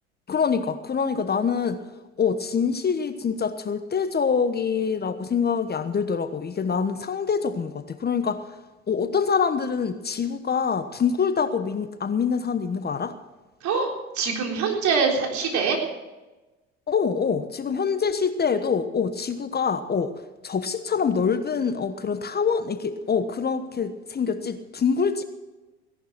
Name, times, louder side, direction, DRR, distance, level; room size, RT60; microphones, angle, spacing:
voice 1, 0.3-1.8 2.2-8.4 8.9-13.2 16.9-20.1 20.4-25.2, left 6 dB, 30° left, 10 dB, 1.2 m, -25 dB
voice 2, 13.6-15.8, right 5 dB, 55° right, 1 dB, 3.9 m, -24 dB
17.0 x 11.5 x 6.1 m, 1.1 s
hypercardioid pair, 70°, 34 cm